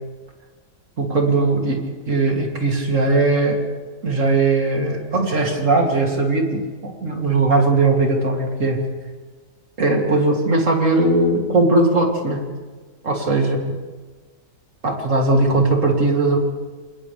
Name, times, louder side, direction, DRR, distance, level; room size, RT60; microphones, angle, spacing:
voice 1, 1.0-3.6 4.0-8.8 9.8-12.4 13.0-13.6 14.8-16.4, right 2 dB, 40° right, 0 dB, 3.3 m, -19 dB
27.5 x 27.5 x 3.5 m, 1.4 s
omnidirectional pair, 2.0 m